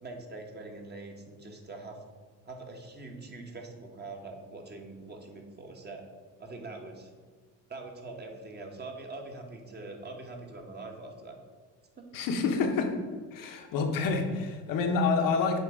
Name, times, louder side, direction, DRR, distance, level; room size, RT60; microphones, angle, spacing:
voice 1, 0.0-2.0 2.4-6.0 6.4-7.1 7.7-11.4 12.0-12.1, right 2 dB, 30° right, 2 dB, 1.2 m, -43 dB
voice 2, 12.1-13.0 13.3-15.6, left 4 dB, 70° left, 4 dB, 1.1 m, -28 dB
8.1 x 3.0 x 4.9 m, 1.5 s
cardioid pair, 100°, 35 cm